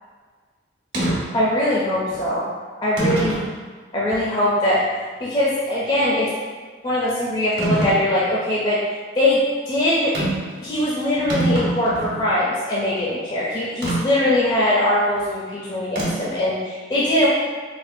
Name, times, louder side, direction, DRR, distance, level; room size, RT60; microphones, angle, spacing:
sound 1, 0.9-1.2 2.1-2.2 3.0-3.5 4.1-4.2 7.6-8.0 10.1-10.5 10.8-10.9 11.1-12.2 13.8-14.0 16.0-16.4, right 2 dB, 60° right, 1.1 m, -23 dB
voice 1, 1.3-2.5 2.8-3.4 3.9-4.8 5.2-6.3 6.8-8.8 9.2-10.1 10.6-17.3, left 1 dB, 25° left, -7 dB, 0.5 m, -21 dB
4.2 x 2.3 x 2.6 m, 1.5 s
head